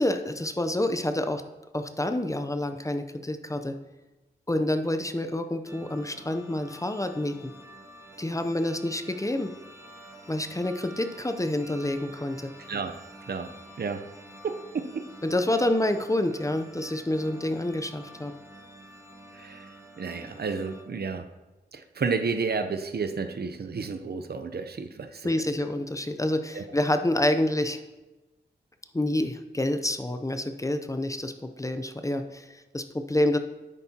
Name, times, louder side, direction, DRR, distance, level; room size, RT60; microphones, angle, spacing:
voice 1, 0.0-1.4 1.7-3.7 4.5-7.5 8.2-9.5 10.3-12.5 15.2-18.3 25.2-27.8 28.9-33.4, left 1 dB, 20° left, 7 dB, 0.6 m, -28 dB
sound 1, 5.6-20.8, right 1 dB, 15° right, 1.5 m, -48 dB
voice 2, 14.4-15.1 19.3-19.7 20.0-21.3 21.7-25.3 26.5-26.6, right 5 dB, 65° right, 8 dB, 0.7 m, -31 dB
10.0 x 8.2 x 2.8 m, 1.1 s
wide cardioid pair, 75°, 18 cm